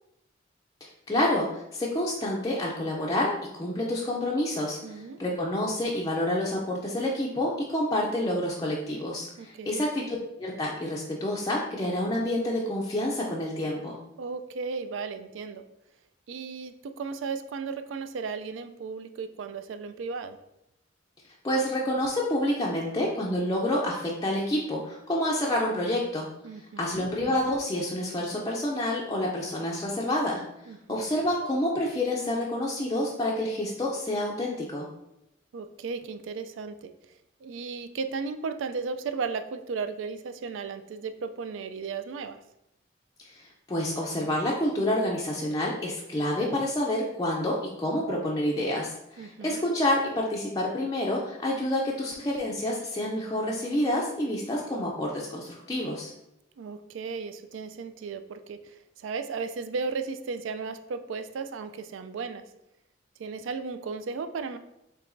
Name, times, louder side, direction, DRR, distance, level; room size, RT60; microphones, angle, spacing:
voice 1, 0.8-14.0 21.4-26.3 26.8-30.4 30.9-34.9 43.2-56.1, left 1 dB, 20° left, -3 dB, 0.4 m, -28 dB
voice 2, 4.8-5.2 9.4-9.8 14.2-15.6 16.3-20.4 26.4-27.1 30.7-31.1 35.5-36.9 37.4-42.4 49.2-49.6 56.6-62.4 63.2-64.6, right 5 dB, 75° right, 10 dB, 0.3 m, -35 dB
4.7 x 3.3 x 2.6 m, 0.85 s
head